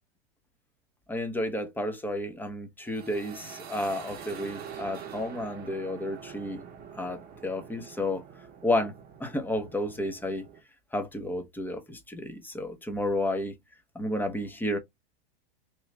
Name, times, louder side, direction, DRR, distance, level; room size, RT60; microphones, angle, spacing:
voice 1, 1.1-6.6 6.9-8.2 8.6-8.9 9.2-10.5 10.9-13.5 13.9-14.8, left 1 dB, 5° left, 0.7 m, -31 dB
sound 1, 2.8-10.6, right 7 dB, 30° right, 0.8 m, -45 dB
3.0 x 2.4 x 3.1 m
hypercardioid pair, 115°, 31 cm